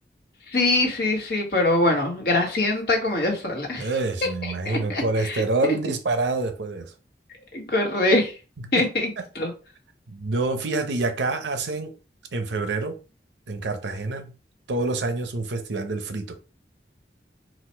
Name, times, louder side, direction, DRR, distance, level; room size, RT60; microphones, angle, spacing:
voice 1, 0.5-3.9 4.4-5.7 7.5-8.3 8.7-9.5, left 2 dB, 65° left, 1.3 m, -23 dB
voice 2, 3.8-6.9 8.6-8.8 10.1-11.9 12.3-13.0 13.5-14.3 14.7-16.4, right 3 dB, 90° right, 0.7 m, -27 dB
4.2 x 2.4 x 4.3 m
head